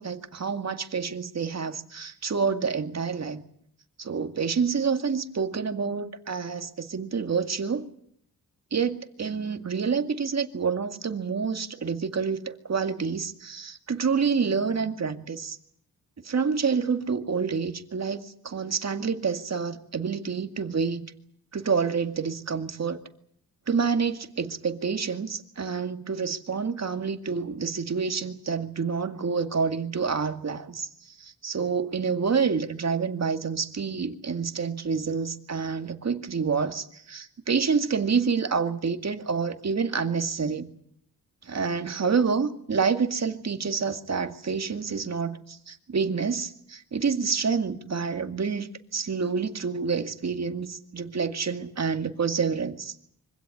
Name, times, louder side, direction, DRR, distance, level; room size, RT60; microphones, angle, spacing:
voice 1, 0.0-3.4 4.0-7.9 8.7-15.6 16.2-21.1 21.5-23.0 23.7-40.7 41.4-52.9, right 5 dB, 45° right, 2.1 m, -28 dB
25.0 x 16.5 x 9.9 m
cardioid pair, 75°, 37 cm